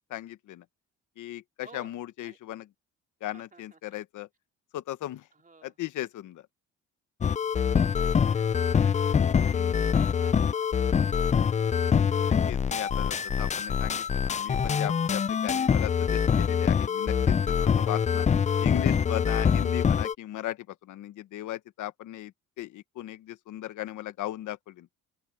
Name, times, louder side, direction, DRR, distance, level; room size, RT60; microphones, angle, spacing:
voice 1, 0.1-0.6 1.2-2.7 3.2-4.3 4.7-5.3 5.6-6.4 9.5-9.8 12.1-18.3 18.6-24.9, left 13 dB, 85° left, 1.3 m, -37 dB
voice 2, 1.6-1.9 2.2-2.4 3.3-3.8 5.3-5.7 7.5-9.1 9.5-11.3, right 4 dB, 25° right, 3.4 m, -53 dB
sound 1, 7.2-20.1, left 7 dB, 25° left, 0.4 m, -25 dB
open air
cardioid pair, 90°, 30 cm